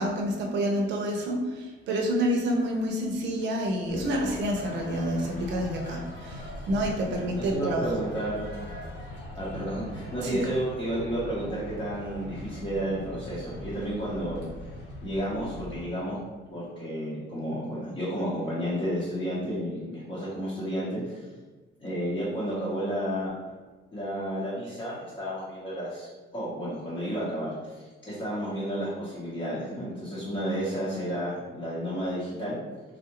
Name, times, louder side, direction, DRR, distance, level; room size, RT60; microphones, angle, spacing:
voice 1, 0.0-7.8 10.2-10.4, equal, 60° right, 1 dB, 0.6 m, -28 dB
sound 1, 3.9-15.9, equal, 55° left, 1.1 m, -41 dB
voice 2, 7.3-8.5 9.3-14.4 15.0-21.3 21.8-23.3 23.9-32.6, equal, 25° left, -9 dB, 0.8 m, -32 dB
3.5 x 2.4 x 2.9 m, 1.3 s
cardioid pair, 170°, 21 cm